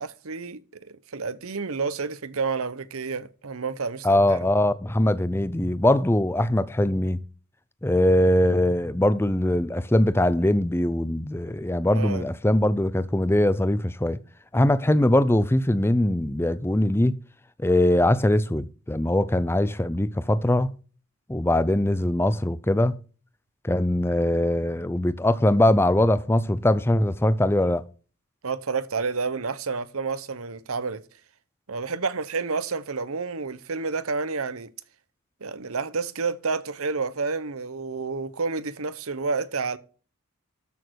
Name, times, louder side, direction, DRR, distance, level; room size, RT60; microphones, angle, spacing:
voice 1, 0.0-4.4 11.9-12.2 28.4-31.0 31.7-34.7 35.4-39.8, right 4 dB, 75° right, 0.9 m, -30 dB
voice 2, 4.0-7.2 7.8-14.2 14.5-17.2 17.6-20.7 21.3-23.0 23.6-27.9, left 1 dB, 10° left, 0.5 m, -22 dB
13.0 x 6.5 x 4.6 m
head